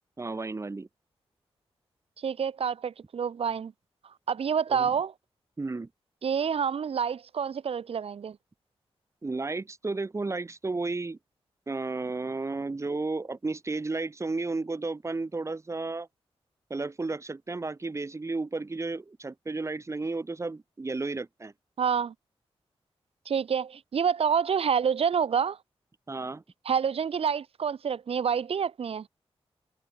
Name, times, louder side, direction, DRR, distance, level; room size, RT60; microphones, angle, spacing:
voice 1, 0.2-0.9 4.7-4.9 5.6-5.9 9.2-11.2 11.7-16.1 16.7-21.5 26.1-26.4, right 3 dB, 30° right, 6.4 m, -33 dB
voice 2, 2.2-3.7 4.3-5.1 6.2-8.4 21.8-22.1 23.2-25.6 26.6-29.1, right 7 dB, 70° right, 2.9 m, -28 dB
open air
wide cardioid pair, 130°, 10 cm